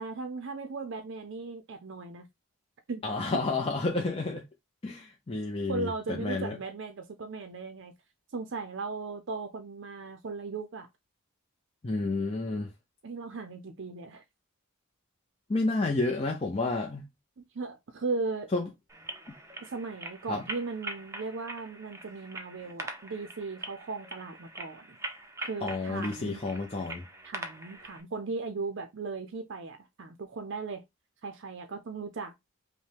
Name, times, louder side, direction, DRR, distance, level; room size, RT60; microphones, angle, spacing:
voice 1, 0.0-2.3 2.9-3.0 5.7-7.9 8.3-10.9 13.0-14.2 17.4-18.5 19.6-25.0 25.4-26.4 27.2-30.8 31.2-32.3, right 4 dB, 60° right, 0.5 m, -37 dB
voice 2, 3.0-4.4 4.8-6.6 11.8-12.7 15.5-17.0 18.5-18.7 20.3-20.4 25.6-27.0, left 3 dB, 25° left, 0.6 m, -30 dB
sound 1, 18.9-28.0, right 2 dB, 15° right, 0.6 m, -43 dB
5.3 x 2.1 x 3.3 m
head